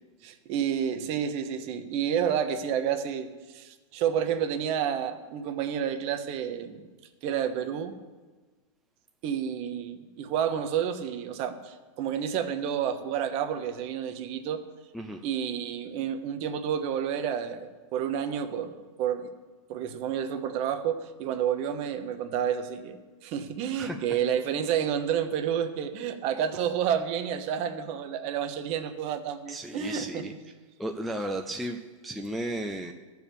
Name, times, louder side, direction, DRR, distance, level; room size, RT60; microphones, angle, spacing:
voice 1, 0.2-6.8 7.2-8.0 9.2-14.6 15.2-19.3 19.7-30.2, right 8 dB, 35° right, 9 dB, 1.0 m, -30 dB
voice 2, 29.5-30.3 30.8-32.9, right 1 dB, ahead, 2 dB, 0.4 m, -34 dB
13.5 x 4.7 x 7.0 m, 1.3 s
hypercardioid pair, 135°, 17 cm